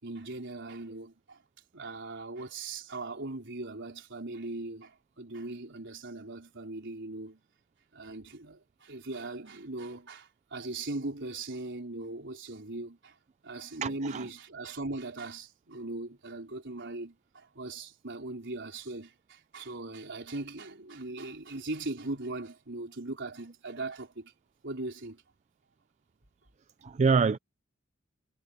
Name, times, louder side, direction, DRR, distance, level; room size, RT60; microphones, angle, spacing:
voice 1, 0.0-1.4 1.7-7.4 7.9-13.1 13.4-24.3 24.6-25.2, right 2 dB, 60° right, 4.5 m, -39 dB
voice 2, 13.8-14.2 26.8-27.4, right 5 dB, 35° right, 0.4 m, -25 dB
head